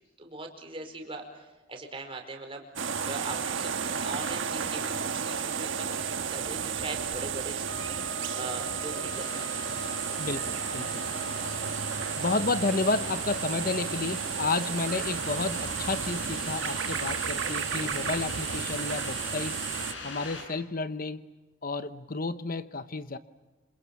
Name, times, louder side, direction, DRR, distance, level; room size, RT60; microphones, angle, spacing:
voice 1, 0.2-7.6 8.3-9.7, right 2 dB, 25° right, 4 dB, 4.8 m, -41 dB
sound 1, 2.8-19.9, right 7 dB, 65° right, 1.5 m, -33 dB
Wind instrument woodwind instrument, 7.7-12.4, left 2 dB, 20° left, 1.2 m, -45 dB
sound 2, 9.1-20.4, left 3 dB, 60° left, 7.5 m, -41 dB
voice 2, 10.2-11.0 12.2-19.6 20.0-21.3 21.6-23.2, left 3 dB, 40° left, 12 dB, 0.8 m, -31 dB
28.0 x 27.0 x 7.2 m, 1.2 s
head